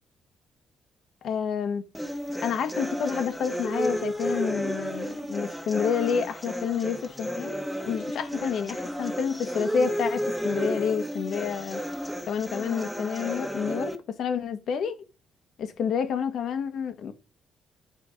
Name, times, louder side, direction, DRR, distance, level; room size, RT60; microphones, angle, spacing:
voice 1, 1.2-1.8 2.4-7.6 7.8-11.8 12.3-14.9 15.6-17.1, left 7 dB, 70° left, 1.5 m, -29 dB
sound 1, 1.9-14.0, equal, ahead, 1.7 m, -32 dB
11.0 x 4.5 x 5.2 m
cardioid pair, 90°, 0 cm